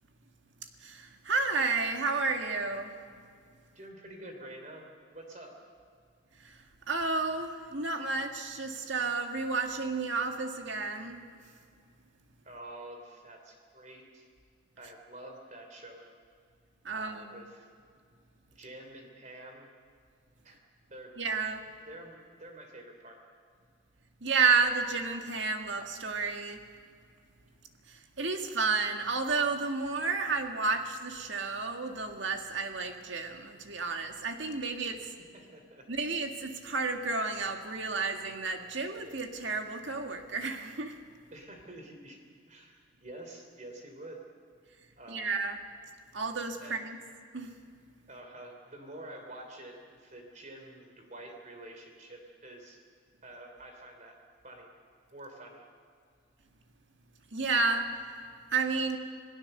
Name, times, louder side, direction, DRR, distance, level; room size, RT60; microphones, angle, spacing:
voice 1, 0.8-2.9 6.4-6.6 6.9-11.2 16.8-17.3 21.2-21.6 24.2-26.6 27.9-35.0 35.9-41.0 45.1-45.6 46.1-47.0 47.3-47.5 57.3-57.9 58.5-59.0, right 4 dB, 65° right, 4 dB, 1.9 m, -31 dB
voice 2, 3.7-4.8 5.1-5.5 12.4-14.3 14.8-16.0 16.9-17.7 18.5-19.7 20.4-20.6 20.9-21.2 21.9-23.2 35.0-35.1 35.3-35.8 41.3-42.2 42.5-44.2 45.0-45.3 46.6-46.8 48.1-52.8 53.2-54.2 54.4-54.7 55.1-55.6, right 1 dB, 40° right, 3 dB, 3.2 m, -48 dB
26.5 x 17.5 x 6.7 m, 2.2 s
head